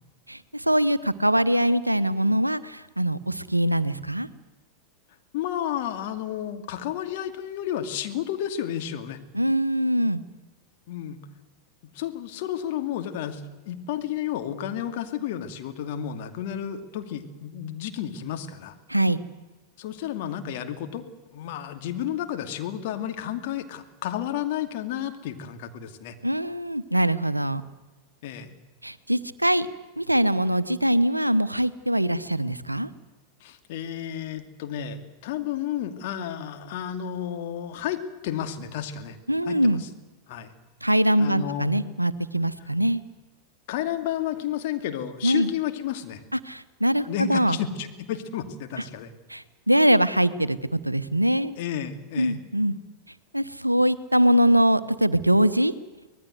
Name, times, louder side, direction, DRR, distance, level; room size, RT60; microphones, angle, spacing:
voice 1, 0.3-4.3 9.3-10.2 18.9-19.2 26.2-27.6 28.8-29.7 30.0-32.9 39.3-39.8 40.8-43.0 45.2-45.5 46.4-47.6 49.3-51.6 52.2-52.8 53.3-55.7, right 1 dB, 85° right, 16 dB, 0.9 m, -22 dB
voice 2, 5.3-9.2 10.9-11.2 11.9-18.7 19.8-21.0 21.3-26.2 28.2-28.5 33.4-39.2 39.4-39.9 40.3-40.5 41.2-41.8 42.6-42.7 43.7-46.2 47.1-49.1 51.6-52.4, left 10 dB, 50° left, 6 dB, 2.5 m, -32 dB
25.0 x 19.5 x 8.0 m, 1.2 s
figure-of-eight pair, 90°, 0 cm